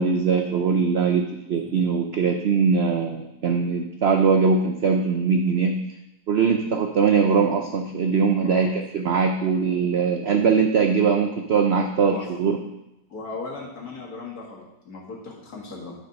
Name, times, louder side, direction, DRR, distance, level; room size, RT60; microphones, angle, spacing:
voice 1, 0.0-5.8 6.3-12.6, right 5 dB, 75° right, 5 dB, 0.6 m, -21 dB
voice 2, 13.1-16.0, left 3 dB, 60° left, -2 dB, 2.2 m, -37 dB
9.5 x 5.4 x 5.2 m, 0.91 s
omnidirectional pair, 1.8 m